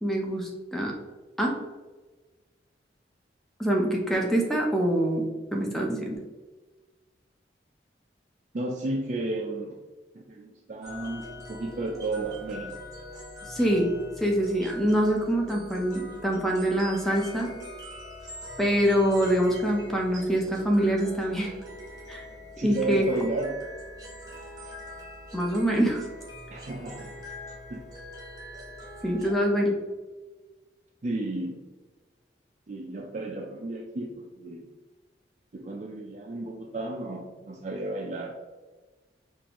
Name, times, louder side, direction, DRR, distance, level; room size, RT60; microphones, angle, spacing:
voice 1, 0.0-0.9 1.4-1.6 3.6-5.3 5.5-6.2 13.4-13.9 14.2-17.5 18.6-21.6 22.1-22.2 22.6-23.1 25.3-26.1 29.0-29.7, equal, ahead, 0 dB, 0.6 m, -25 dB
voice 2, 8.5-9.8 10.1-12.8 22.6-23.6 26.5-27.2 27.7-27.8 29.2-29.5 31.0-31.6 32.7-34.7 35.5-38.3, right 2 dB, 40° right, 1 dB, 0.4 m, -33 dB
sound 1, 10.8-29.3, left 1 dB, 20° right, 0.9 m, -43 dB
5.2 x 2.5 x 2.9 m, 1.2 s
head